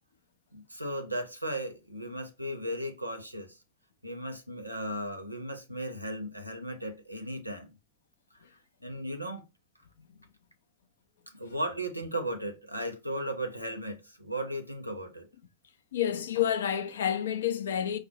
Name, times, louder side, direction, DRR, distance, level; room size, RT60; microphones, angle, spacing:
voice 1, 0.5-3.6 4.0-7.8 8.8-9.4 11.3-15.3, right 1 dB, 90° right, 0.6 m, -36 dB
voice 2, 15.9-18.0, left 9 dB, 65° left, 0.4 m, -29 dB
4.8 x 2.0 x 2.7 m
figure-of-eight pair, 90°, 0 cm